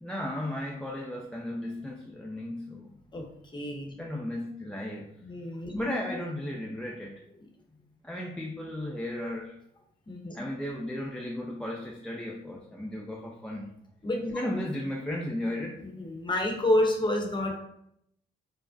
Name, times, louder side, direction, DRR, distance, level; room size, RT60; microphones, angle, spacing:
voice 1, 0.0-2.9 4.0-5.1 5.8-7.2 8.0-9.6 10.3-13.7 14.3-15.8, left 1 dB, 5° left, -2 dB, 0.4 m, -35 dB
voice 2, 3.5-3.9 5.2-6.1 10.1-10.4 14.0-14.4 15.8-17.6, left 1 dB, 25° left, 2 dB, 0.8 m, -29 dB
4.8 x 2.0 x 2.6 m, 0.73 s
cardioid pair, 90°, 20 cm